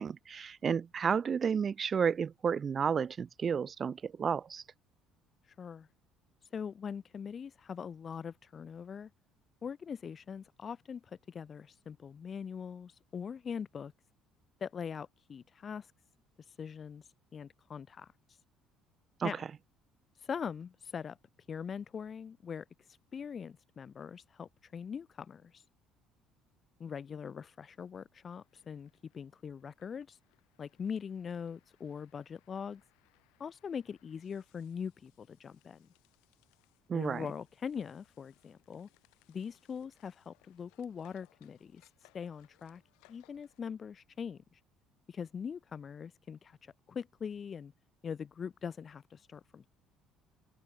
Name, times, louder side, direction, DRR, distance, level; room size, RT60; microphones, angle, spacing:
voice 1, 0.0-4.6 19.2-19.3 36.9-37.3, right 6 dB, 40° right, 0.3 m, -31 dB
voice 2, 5.6-5.9 6.5-9.1 9.6-13.9 14.6-15.9 16.6-17.0 17.3-18.1 19.2-19.4 20.2-21.2 21.5-22.6 23.1-25.6 26.8-30.2 30.6-32.8 33.4-35.9 36.9-38.9 39.3-41.8 42.1-42.8 43.1-44.6 45.1-47.7 48.0-49.7, left 7 dB, 45° left, 1.3 m, -42 dB
sound 1, 28.3-43.6, left 26 dB, 75° left, 3.9 m, -70 dB
hypercardioid pair, 60°, 0 cm